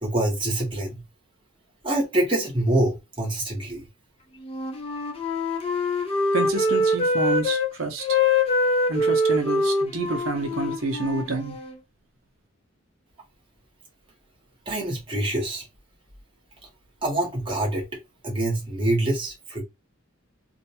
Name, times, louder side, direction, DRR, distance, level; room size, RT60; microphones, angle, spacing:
voice 1, 0.0-1.0 1.8-3.8 14.7-15.6 17.0-19.6, right 1 dB, 25° right, 0.9 m, -25 dB
Wind instrument woodwind instrument, 4.4-7.7 8.0-11.8, left 2 dB, 30° left, 0.6 m, -24 dB
voice 2, 6.3-8.2 8.9-11.6, right 2 dB, 80° right, 0.6 m, -28 dB
2.5 x 2.2 x 2.7 m
head